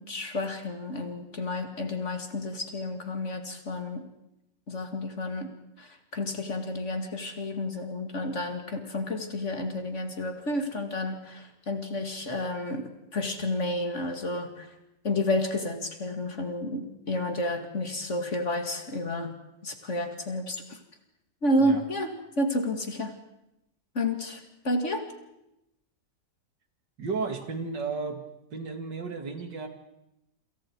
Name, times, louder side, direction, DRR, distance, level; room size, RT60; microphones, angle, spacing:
voice 1, 0.0-4.0 4.7-5.5 5.8-14.7 15.0-19.3 19.6-20.8 21.4-23.1 23.9-24.4 24.6-25.1, left 1 dB, 40° left, 5 dB, 2.6 m, -30 dB
voice 2, 27.0-28.2 28.5-29.7, right 4 dB, 75° right, 6 dB, 3.0 m, -33 dB
28.5 x 27.0 x 4.7 m, 0.89 s
omnidirectional pair, 1.9 m